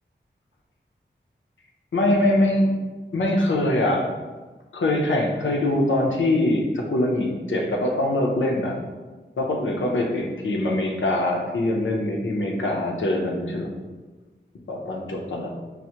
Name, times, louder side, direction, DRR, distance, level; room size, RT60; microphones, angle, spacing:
voice 1, 1.9-2.7 3.1-4.1 4.7-8.8 9.4-13.7 14.7-15.5, left 1 dB, 80° left, 0 dB, 0.5 m, -23 dB
4.5 x 2.1 x 2.7 m, 1.3 s
wide cardioid pair, 65°, 19 cm